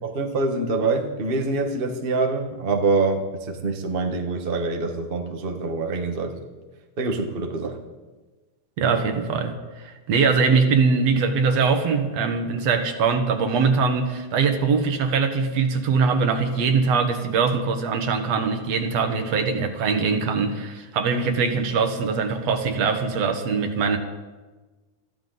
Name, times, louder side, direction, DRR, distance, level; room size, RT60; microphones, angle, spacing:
voice 1, 0.0-6.4 7.0-7.8, right 3 dB, 80° right, 3 dB, 0.5 m, -25 dB
voice 2, 8.8-24.0, right 5 dB, 60° right, 6 dB, 2.2 m, -22 dB
22.5 x 14.0 x 4.0 m, 1.3 s
omnidirectional pair, 3.7 m